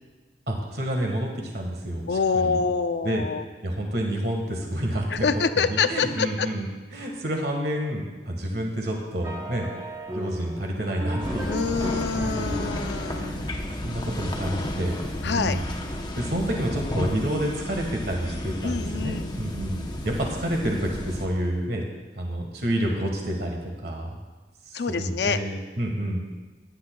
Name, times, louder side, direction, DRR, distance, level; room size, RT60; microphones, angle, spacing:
voice 1, 0.5-2.0 2.3-2.6 3.0-3.3 3.6-5.3 5.7-6.6 6.9-9.7 10.1-11.8 12.1-12.7 13.0-13.5 13.8-15.0 15.2-15.7 16.2-19.8 20.0-21.8 22.2-24.1 24.9-26.2, right 1 dB, 60° right, 1 dB, 1.6 m, -29 dB
voice 2, 2.1-3.5 5.1-6.5 11.4-13.4 15.2-15.6 18.6-19.4 24.7-25.4, left 5 dB, 70° left, 10 dB, 0.5 m, -26 dB
sound 1, 9.2-14.5, right 1 dB, 20° right, 0.9 m, -37 dB
sound 2, 11.2-21.3, left 1 dB, 25° left, 0.9 m, -32 dB
16.5 x 10.5 x 2.3 m, 1.3 s
head